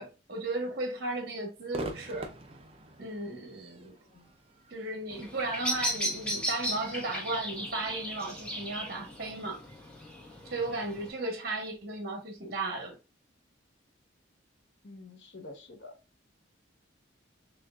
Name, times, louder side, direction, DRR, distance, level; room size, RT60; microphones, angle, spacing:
voice 1, 0.0-2.3 3.0-3.9 4.7-9.6 10.5-12.9, right 2 dB, 50° right, 1.1 m, -35 dB
Crowd / Fireworks, 1.7-9.0, right 1 dB, 30° right, 0.6 m, -46 dB
Bird vocalization bird call bird song, 5.1-11.1, equal, 5° left, 1.1 m, -36 dB
voice 2, 14.8-15.9, left 2 dB, 65° left, 0.9 m, -48 dB
6.2 x 2.4 x 2.3 m
head